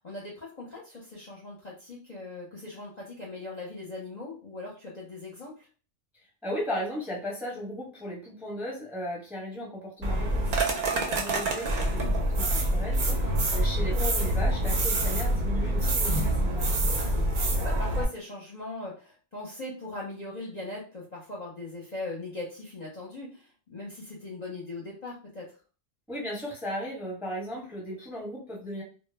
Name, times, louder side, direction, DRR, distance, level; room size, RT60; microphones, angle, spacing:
voice 1, 0.0-5.7 11.9-12.2 13.1-13.4 17.0-25.5, left 2 dB, 45° left, -3 dB, 0.6 m, -40 dB
voice 2, 6.4-13.0 13.5-16.9 26.1-28.8, equal, ahead, -3 dB, 0.7 m, -36 dB
sound 1, 10.0-18.0, right 1 dB, 55° right, 0.6 m, -26 dB
2.1 x 2.0 x 3.2 m, 0.37 s
omnidirectional pair, 1.3 m